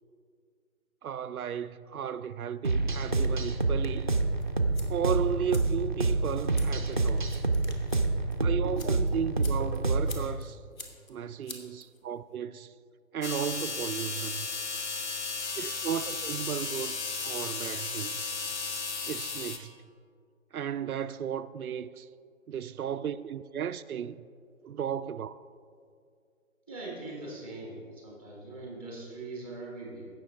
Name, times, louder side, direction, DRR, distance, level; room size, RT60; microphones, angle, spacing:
voice 1, 1.0-4.1 4.9-7.3 8.4-10.6 11.1-12.7 13.1-14.5 15.6-18.2 19.1-19.7 20.5-22.1 22.5-24.2 24.6-25.4, right 8 dB, 85° right, 0.5 m, -34 dB
sound 1, 2.6-10.3, right 3 dB, 35° right, 0.5 m, -28 dB
sound 2, 4.4-12.4, left 4 dB, 70° left, 1.4 m, -50 dB
sound 3, 13.2-19.6, left 4 dB, 55° left, 1.0 m, -34 dB
voice 2, 26.7-30.1, right 2 dB, 10° left, 0.7 m, -41 dB
16.0 x 6.2 x 3.5 m
figure-of-eight pair, 155°, 42 cm